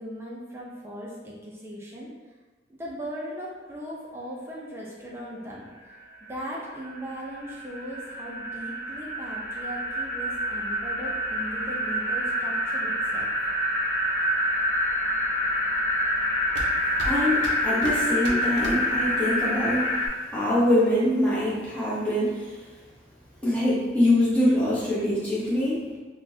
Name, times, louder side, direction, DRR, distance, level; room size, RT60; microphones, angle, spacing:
voice 1, 0.0-2.1 2.7-6.0 6.3-13.3, equal, 15° right, -5 dB, 0.6 m, -38 dB
sound 1, 5.9-6.0 6.3-20.1, equal, 60° left, 0.7 m, -27 dB
sound 2, 13.5-19.5, right 1 dB, 80° right, 0.6 m, -38 dB
voice 2, 17.0-20.0 20.3-22.6 23.4-26.0, left 1 dB, 5° left, -10 dB, 0.9 m, -24 dB
3.8 x 2.3 x 2.7 m, 1.3 s
head